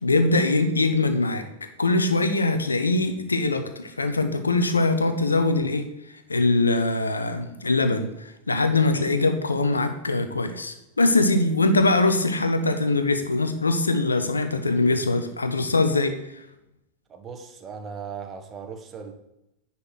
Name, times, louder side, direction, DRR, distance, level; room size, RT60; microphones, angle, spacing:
voice 1, 0.0-1.4 1.8-5.9 6.3-16.4, left 2 dB, 80° left, 8 dB, 1.0 m, -22 dB
voice 2, 17.1-19.1, right 6 dB, 25° right, 5 dB, 1.3 m, -38 dB
9.8 x 4.4 x 6.5 m, 0.87 s
figure-of-eight pair, 90°, 0 cm